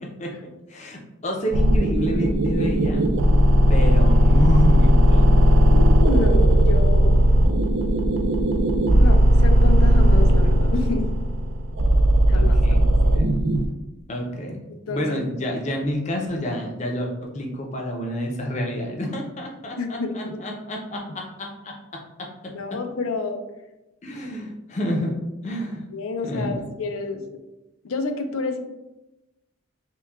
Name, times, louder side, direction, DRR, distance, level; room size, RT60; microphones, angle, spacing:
voice 1, 0.7-3.0 3.7-5.4 12.3-12.9 13.2-13.3 13.6-13.7 14.1-14.6 14.9-22.8 24.0-25.8 26.3-26.6, equal, 35° left, 1 dB, 0.5 m, -29 dB
sound 1, 1.5-13.7, equal, 65° right, 0.3 m, -17 dB
voice 2, 5.7-7.3 9.0-11.1 12.3-12.9 14.9-15.6 19.8-20.4 22.5-23.4 25.9-27.4 27.8-28.6, left 3 dB, 80° left, 7 dB, 0.5 m, -29 dB
5.8 x 2.2 x 2.3 m, 0.99 s
head